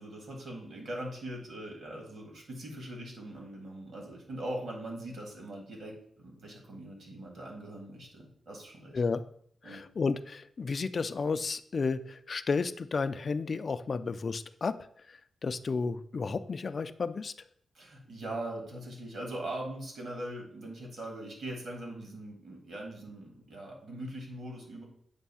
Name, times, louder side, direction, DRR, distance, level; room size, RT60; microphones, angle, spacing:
voice 1, 0.0-9.0 9.6-9.8 17.7-24.8, right 1 dB, 65° right, 0 dB, 1.9 m, -41 dB
voice 2, 9.6-14.8 15.1-17.3, left 4 dB, 40° left, 12 dB, 0.3 m, -32 dB
8.0 x 2.7 x 5.5 m, 0.64 s
wide cardioid pair, 120°, 0 cm